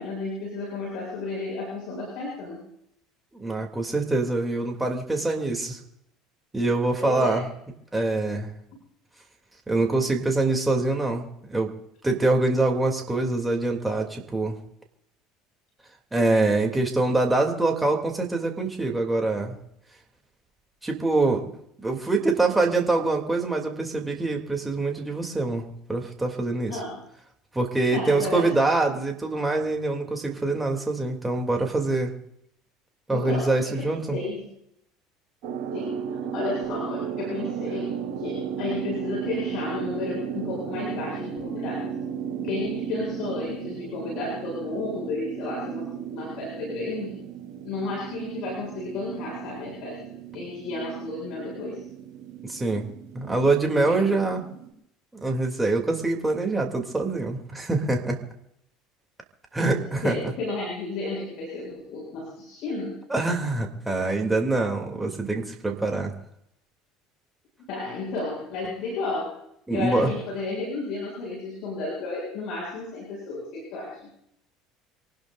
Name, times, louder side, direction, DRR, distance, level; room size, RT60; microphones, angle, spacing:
voice 1, 0.0-2.6 7.0-7.4 26.7-27.0 27.9-28.7 33.1-33.8 34.1-34.5 35.7-41.9 42.4-47.1 47.6-51.8 53.7-54.1 59.7-63.0 67.7-69.3 69.7-74.1, left 3 dB, 60° left, -3 dB, 7.8 m, -32 dB
voice 2, 3.3-5.8 6.5-7.5 7.9-8.5 9.7-11.7 12.0-14.6 16.1-19.6 20.8-21.5 21.8-26.8 27.5-32.1 33.1-34.2 52.5-54.4 55.2-58.2 59.5-60.2 63.1-66.1 69.7-70.1, right 2 dB, 15° right, 2 dB, 3.1 m, -24 dB
sound 1, 35.4-54.7, right 8 dB, 65° right, 3.5 m, -35 dB
27.5 x 19.0 x 2.7 m, 0.75 s
hypercardioid pair, 70°, 0 cm